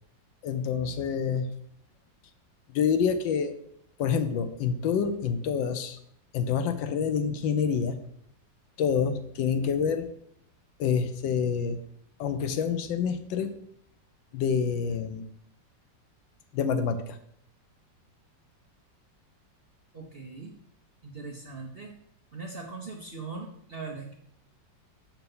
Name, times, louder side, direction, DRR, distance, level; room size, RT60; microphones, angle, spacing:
voice 1, 0.4-1.5 2.7-3.5 4.0-6.0 6.3-8.0 8.8-10.1 10.8-11.8 12.2-13.5 14.3-15.2 16.5-17.2, left 6 dB, 85° left, 9 dB, 1.4 m, -27 dB
voice 2, 19.9-20.5 21.0-21.9 22.3-24.1, right 4 dB, 50° right, -1 dB, 0.7 m, -40 dB
6.8 x 4.5 x 5.4 m, 0.70 s
omnidirectional pair, 2.0 m